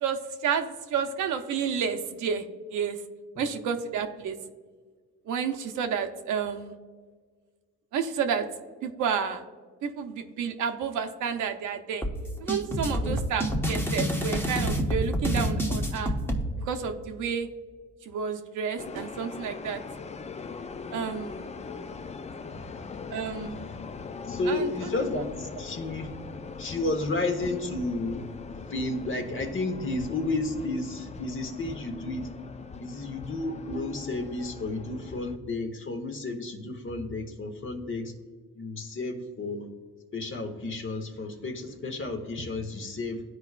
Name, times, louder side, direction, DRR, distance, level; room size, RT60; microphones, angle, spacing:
voice 1, 0.0-2.4 2.7-3.0 3.4-4.4 5.3-6.8 7.9-8.5 8.8-9.4 9.8-12.0 12.4-16.1 16.6-17.5 18.0-19.8 20.9-21.5 23.1-23.6 24.5-24.7, right 7 dB, 80° right, 6 dB, 0.8 m, -30 dB
sound 1, 12.0-16.4, equal, 10° left, 0.9 m, -27 dB
sound 2, 18.8-35.4, left 5 dB, 25° left, 0.4 m, -41 dB
voice 2, 24.3-26.1 26.6-28.2 28.7-32.3 32.8-38.1 38.5-39.7 40.1-43.2, left 2 dB, 40° left, 5 dB, 1.2 m, -32 dB
13.0 x 4.8 x 2.4 m, 1.5 s
cardioid pair, 90°, 30 cm